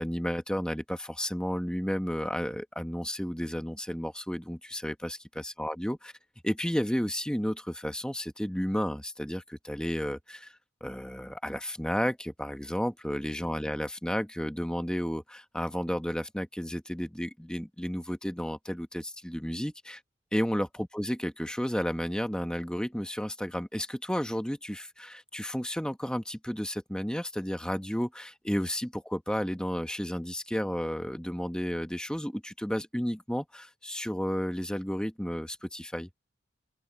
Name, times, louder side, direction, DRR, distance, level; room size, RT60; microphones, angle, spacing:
voice 1, 0.0-6.1 6.4-10.5 10.8-20.0 20.3-36.1, equal, 5° left, 1.2 m, -32 dB
open air
head